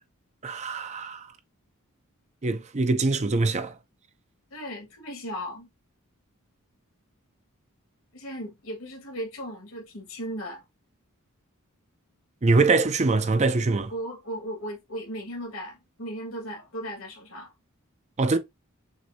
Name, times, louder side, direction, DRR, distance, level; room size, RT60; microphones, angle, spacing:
voice 1, 0.4-1.3 2.4-3.8 12.4-13.9 18.2-18.4, right 3 dB, 30° right, 0.5 m, -23 dB
voice 2, 4.5-5.7 8.1-10.6 13.9-17.5, equal, 70° left, 1.8 m, -36 dB
6.4 x 2.7 x 2.7 m
head